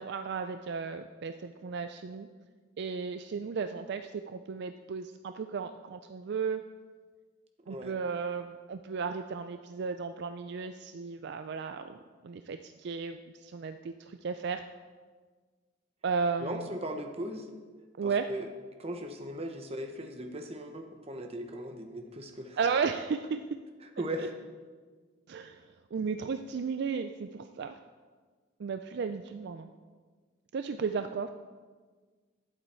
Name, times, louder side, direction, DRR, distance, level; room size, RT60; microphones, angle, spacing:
voice 1, 0.0-2.3 2.8-6.6 7.7-14.6 16.0-16.7 18.0-18.3 22.6-23.4 25.3-25.6 25.9-27.8 28.6-29.7 30.5-31.3, right 5 dB, 60° right, 8 dB, 0.4 m, -34 dB
voice 2, 16.4-17.5 18.0-18.5 18.8-22.6 23.8-24.3, right 1 dB, 30° right, 4 dB, 1.0 m, -38 dB
11.5 x 7.9 x 4.4 m, 1.5 s
head